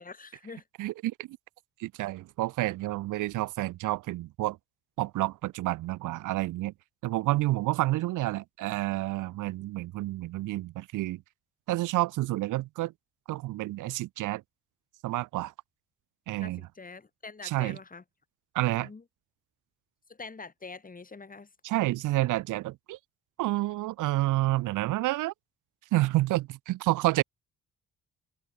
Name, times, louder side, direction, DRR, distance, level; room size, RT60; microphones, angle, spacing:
voice 1, 0.0-0.6 16.4-18.0 18.8-19.0 20.1-21.5, left 4 dB, 30° left, 7.2 m, -45 dB
voice 2, 0.8-1.4 1.8-4.6 5.0-6.7 7.0-11.2 11.7-12.9 13.3-14.4 15.0-15.5 16.3-16.6 17.4-17.8 18.5-18.9 21.6-23.0 23.4-25.3 25.9-27.2, right 17 dB, 85° right, 0.8 m, -29 dB
cardioid pair, 90°, 30 cm